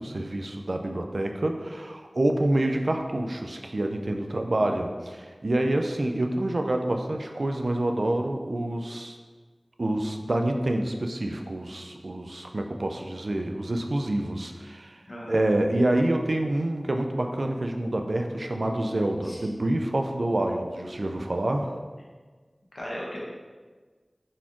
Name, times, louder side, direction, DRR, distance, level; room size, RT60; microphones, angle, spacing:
voice 1, 0.0-9.2 9.8-15.0 15.3-21.8, right 1 dB, 70° right, 4 dB, 0.4 m, -27 dB
voice 2, 15.1-15.4 19.2-19.4 22.7-23.2, equal, 70° left, -5 dB, 1.0 m, -36 dB
4.1 x 3.6 x 2.9 m, 1.4 s
wide cardioid pair, 45°, 0 cm